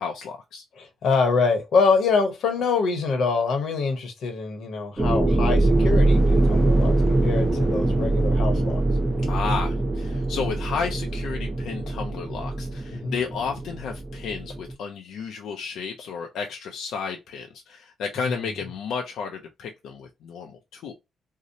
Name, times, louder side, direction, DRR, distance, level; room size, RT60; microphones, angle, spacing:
voice 1, 0.0-0.6 9.3-20.9, left 6 dB, 80° left, 0.4 m, -32 dB
voice 2, 0.8-8.8 12.9-13.1 18.2-18.4, left 4 dB, 60° left, 0.8 m, -25 dB
sound 1, 5.0-14.7, right 2 dB, 15° right, 0.4 m, -23 dB
2.7 x 2.0 x 2.5 m
cardioid pair, 160°, 0 cm